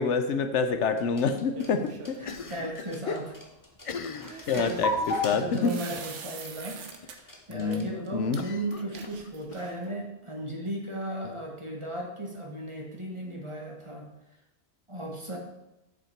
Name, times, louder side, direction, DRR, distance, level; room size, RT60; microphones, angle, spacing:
voice 1, 0.0-1.8 2.1-2.2 3.1-3.2 4.5-5.7 7.5-7.9 8.1-8.4, left 5 dB, 80° left, 8 dB, 1.1 m, -27 dB
sound 1, 0.8-8.1, left 2 dB, 15° left, 1.1 m, -35 dB
sound 2, 1.6-2.3 4.3-7.2 7.5-7.8 8.3-8.4 8.7-9.9, right 6 dB, 90° right, 1.2 m, -44 dB
Cough, 2.2-3.0 3.3-3.4 3.8-5.3 6.0-6.3 6.6-6.7 7.0-7.1 8.3-9.6, left 5 dB, 55° left, 0.3 m, -41 dB
voice 2, 2.2-3.3 4.1-4.8 5.3-14.1 14.9-15.4, right 1 dB, 25° right, 0 dB, 1.6 m, -36 dB
7.7 x 7.3 x 4.6 m, 0.94 s
omnidirectional pair, 1.2 m